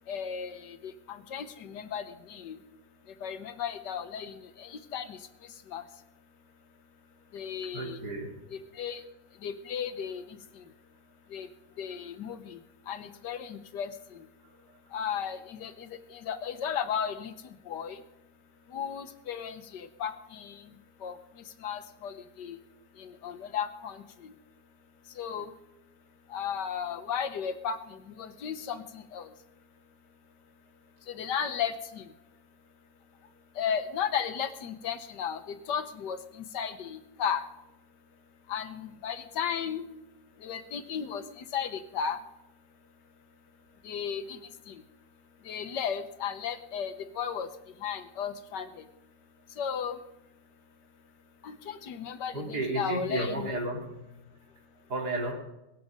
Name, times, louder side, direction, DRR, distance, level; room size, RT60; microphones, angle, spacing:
voice 1, 0.1-2.6 3.2-5.2 5.7-5.8 7.3-8.0 8.5-9.0 9.4-10.4 11.3-11.5 11.8-12.6 12.9-13.9 14.9-17.3 17.7-18.0 18.7-20.6 21.0-21.2 21.6-22.6 23.0-24.3 25.2-25.5 26.3-29.3 31.1-32.0 33.6-37.4 38.5-39.9 40.4-42.2 43.8-44.4 44.7-44.8 45.4-47.5 47.8-48.8 49.6-50.0 51.4-53.5, left 7 dB, 75° left, 10 dB, 1.7 m, -35 dB
voice 2, 7.7-8.3 52.3-53.8 54.9-55.3, right 2 dB, 65° right, -1 dB, 3.9 m, -32 dB
22.5 x 7.7 x 5.4 m, 0.94 s
omnidirectional pair, 1.9 m